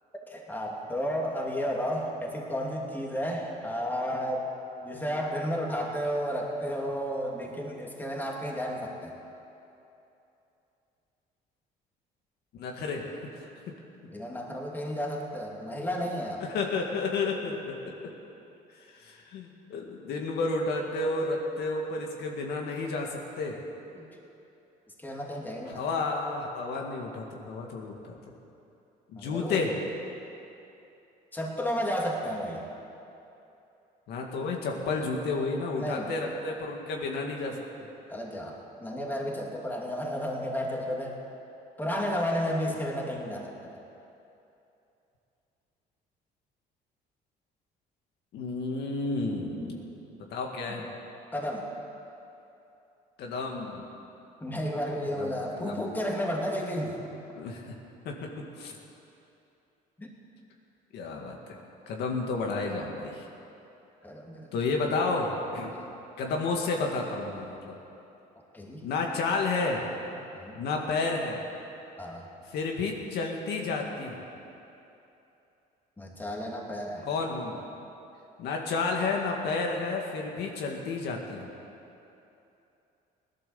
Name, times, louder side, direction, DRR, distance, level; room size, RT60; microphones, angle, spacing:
voice 1, 0.3-4.5 4.8-9.1 14.1-16.4 23.9-24.1 25.0-25.8 29.2-29.6 31.3-32.7 35.8-36.1 38.1-41.2 41.8-43.7 49.5-49.9 51.3-51.7 54.4-57.1 60.0-60.1 64.0-64.5 65.7-65.9 68.5-68.9 70.3-70.6 72.0-72.3 76.0-77.1, equal, 10° left, -1 dB, 2.5 m, -32 dB
voice 2, 12.5-13.1 13.7-13.8 16.4-18.1 18.8-23.6 25.7-28.2 29.1-29.8 34.1-37.9 48.3-49.8 50.3-50.9 53.2-53.9 55.2-55.9 57.4-57.8 58.0-58.8 60.9-61.5 61.9-63.3 64.5-65.8 66.2-67.7 68.8-69.8 70.5-71.4 72.5-74.2 77.0-77.6 78.4-81.5, left 3 dB, 75° left, 1 dB, 2.0 m, -31 dB
17.5 x 11.5 x 7.0 m, 2.9 s
cardioid pair, 110°, 17 cm